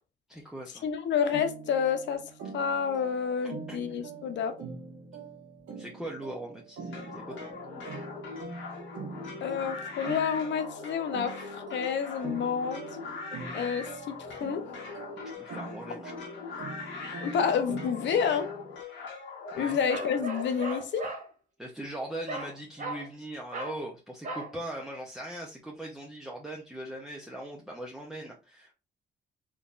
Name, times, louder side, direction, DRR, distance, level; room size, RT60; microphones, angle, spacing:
voice 1, 0.3-0.9 3.7-4.0 5.8-8.0 15.4-16.1 19.5-19.8 21.6-28.7, right 1 dB, ahead, 0.7 m, -40 dB
voice 2, 0.8-2.2 2.5-4.6 9.4-11.3 11.7-12.8 13.5-13.9 14.2-14.6 17.2-18.5 19.6-21.1, left 7 dB, 65° left, 0.7 m, -29 dB
sound 1, 1.3-18.8, right 4 dB, 75° right, 1.1 m, -44 dB
sound 2, 6.9-20.8, left 4 dB, 80° left, 1.3 m, -41 dB
Bark, 19.9-21.3 22.3-22.5 22.8-23.1 23.5-23.8 24.2-24.5, right 2 dB, 40° right, 1.2 m, -37 dB
3.7 x 2.8 x 2.4 m
cardioid pair, 90°, 20 cm